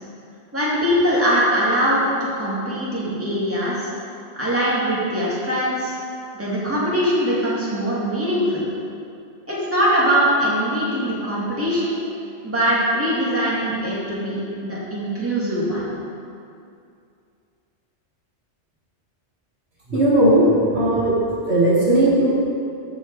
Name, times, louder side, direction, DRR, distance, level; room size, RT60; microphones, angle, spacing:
voice 1, 0.5-3.9 4.3-5.9 6.3-8.6 9.5-11.9 12.4-15.9, equal, 10° right, -8 dB, 2.4 m, -22 dB
voice 2, 19.9-21.2 21.5-22.3, right 1 dB, 65° right, -6 dB, 2.1 m, -17 dB
14.0 x 5.6 x 4.7 m, 2.5 s
omnidirectional pair, 1.2 m